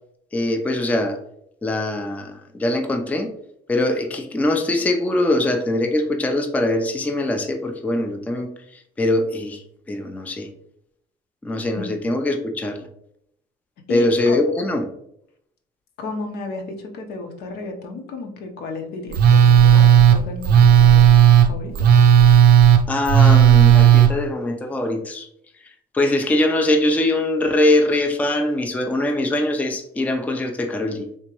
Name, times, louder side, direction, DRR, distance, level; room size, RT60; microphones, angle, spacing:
voice 1, 0.3-1.2 1.6-3.3 3.7-10.5 11.4-12.9 13.9-14.8 22.9-25.3 25.9-31.1, left 1 dB, 10° left, 5 dB, 0.4 m, -22 dB
voice 2, 13.9-14.4 16.0-21.1 21.5-21.9, left 3 dB, 70° left, 3 dB, 0.8 m, -33 dB
Telephone, 19.1-24.1, right 9 dB, 65° right, 0.4 m, -12 dB
3.5 x 2.9 x 2.9 m, 0.74 s
cardioid pair, 110°, 17 cm